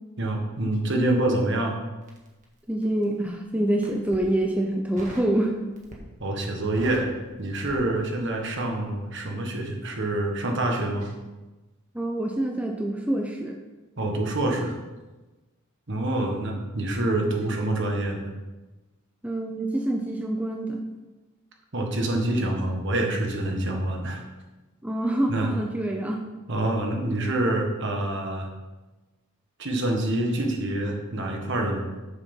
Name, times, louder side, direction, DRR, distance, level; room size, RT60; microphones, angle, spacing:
voice 1, 0.2-1.8 6.2-7.1 7.4-11.1 14.0-14.8 15.9-18.3 21.7-24.2 25.3-25.5 26.5-28.5 29.6-31.9, right 1 dB, 60° right, 2 dB, 1.5 m, -26 dB
Crackle, 2.0-3.2 3.7-4.3 5.0-5.4 5.7-6.2 6.5-8.4 8.7-8.9, right 1 dB, 35° right, 1.6 m, -43 dB
voice 2, 2.7-5.6 11.9-13.6 19.2-20.8 24.8-26.2, right 1 dB, 5° right, 1 dB, 0.6 m, -26 dB
6.9 x 6.8 x 5.4 m, 1.1 s
head